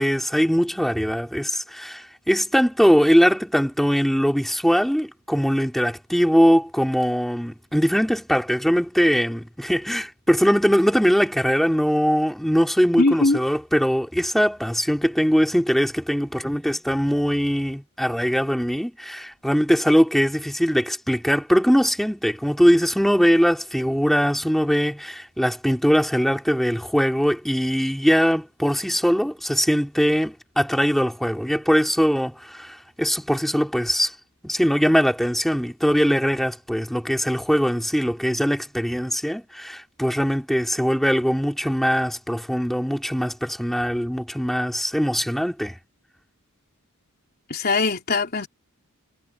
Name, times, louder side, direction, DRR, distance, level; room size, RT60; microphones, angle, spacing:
voice 1, 0.0-34.1 34.4-45.8, equal, ahead, 3.6 m, -21 dB
voice 2, 13.0-13.4 47.5-48.5, left 3 dB, 45° left, 3.5 m, -21 dB
head